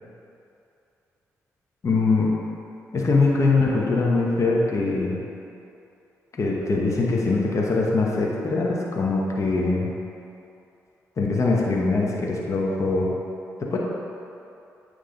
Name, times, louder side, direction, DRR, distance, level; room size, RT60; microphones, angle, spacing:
voice 1, 1.8-2.3 2.9-5.2 6.4-9.9 11.2-13.1 13.6-13.8, left 3 dB, 50° left, -3 dB, 1.0 m, -22 dB
8.9 x 3.3 x 3.8 m, 2.7 s
hypercardioid pair, 45°, 7 cm